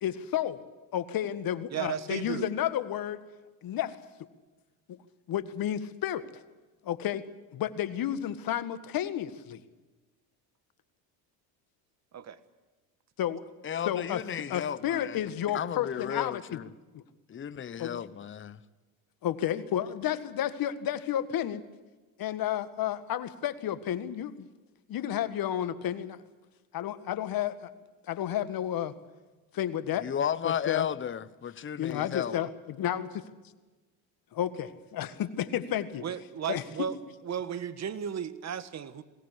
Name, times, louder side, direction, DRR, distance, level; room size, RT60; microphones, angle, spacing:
voice 1, 0.0-3.2 3.6-4.0 4.9-5.0 5.3-6.3 6.8-7.2 7.5-9.6 13.2-13.4 13.8-14.2 14.5-16.6 16.9-17.0 17.8-18.0 19.2-21.7 22.2-24.5 24.9-26.2 26.7-27.7 28.1-28.9 29.5-30.1 30.4-30.9 31.8-33.2 34.3-36.0 36.5-36.9, left 11 dB, 50° left, 1.8 m, -31 dB
voice 2, 1.7-2.5 12.1-12.4 36.0-37.0 37.2-39.0, right 8 dB, 35° right, 1.6 m, -34 dB
voice 3, 13.6-15.2 15.5-16.7 17.3-18.6 30.0-32.4, left 8 dB, 25° left, 1.0 m, -34 dB
21.5 x 17.5 x 8.2 m
supercardioid pair, 85°, 43 cm